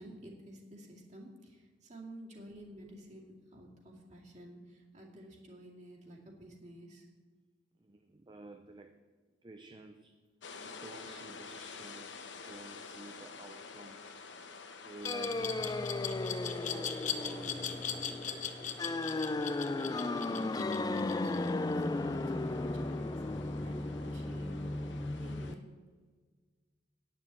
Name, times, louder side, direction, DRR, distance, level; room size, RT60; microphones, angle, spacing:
voice 1, 0.0-7.1 19.7-24.9 25.2-25.6, right 1 dB, 40° right, -1 dB, 2.3 m, -51 dB
voice 2, 7.8-8.9 9.4-10.1 10.6-14.2 14.8-16.0 16.7-18.5, right 2 dB, 25° right, 5 dB, 0.6 m, -51 dB
sound 1, 10.4-25.6, left 4 dB, 85° left, 1.1 m, -50 dB
Glass, 15.0-21.9, left 8 dB, 45° left, 0.8 m, -39 dB
sound 2, 15.0-25.5, left 2 dB, 20° left, 0.4 m, -35 dB
9.3 x 7.0 x 8.4 m, 1.4 s
head